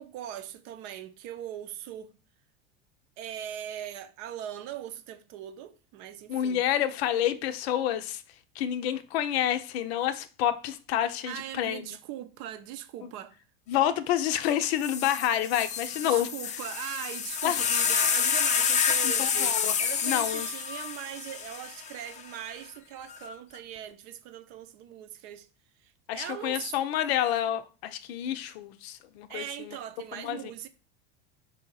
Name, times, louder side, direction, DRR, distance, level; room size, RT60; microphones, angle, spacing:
voice 1, 0.0-2.1 3.2-6.6 11.3-13.4 16.0-25.5 25.8-26.7 29.3-30.7, right 11 dB, 60° right, 0.6 m, -40 dB
voice 2, 6.3-8.2 8.6-12.0 13.0-13.1 13.7-16.3 17.4-17.7 19.0-19.7 20.0-20.5 26.1-29.8 30.1-30.5, left 11 dB, 80° left, 0.5 m, -28 dB
sound 1, 14.4-14.5 14.8-22.2 23.1-23.6, left 7 dB, 25° left, 0.4 m, -28 dB
4.4 x 2.7 x 3.8 m
supercardioid pair, 110°, 31 cm